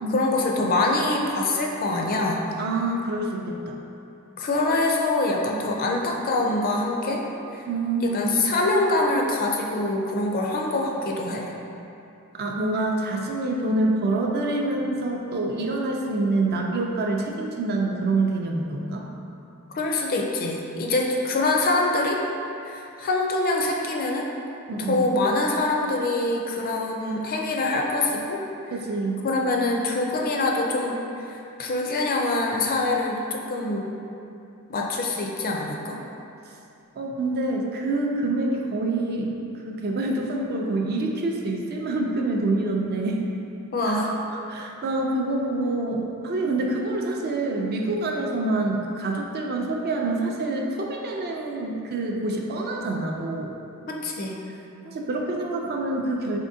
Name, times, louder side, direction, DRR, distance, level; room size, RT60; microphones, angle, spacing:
voice 1, 0.1-2.4 4.4-7.2 7.5-7.6 8.0-11.5 19.7-22.2 22.6-24.3 24.8-28.4 29.2-33.9 34.7-36.0 43.7-44.1 53.9-54.4, left 2 dB, 40° left, 0 dB, 0.4 m, -24 dB
voice 2, 2.6-3.8 7.7-8.3 12.3-19.0 24.7-25.1 28.7-29.3 37.0-39.3 39.6-43.2 43.8-44.0 44.5-53.5 54.8-56.4, right 2 dB, 45° right, 0 dB, 0.4 m, -26 dB
4.2 x 3.6 x 2.6 m, 2.8 s
head